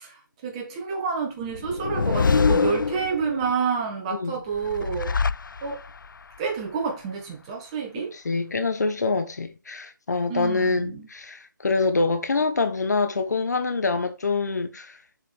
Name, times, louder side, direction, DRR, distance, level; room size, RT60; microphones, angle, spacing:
voice 1, 0.0-5.1 5.6-5.8 6.4-8.1 10.3-11.1, right 6 dB, 15° right, 1.6 m, -29 dB
sound 1, 1.5-3.5 4.5-6.1, left 5 dB, 75° left, 0.4 m, -24 dB
voice 2, 4.1-4.4 8.1-15.0, left 3 dB, 55° left, 1.3 m, -25 dB
7.1 x 5.0 x 3.6 m
figure-of-eight pair, 160°, 11 cm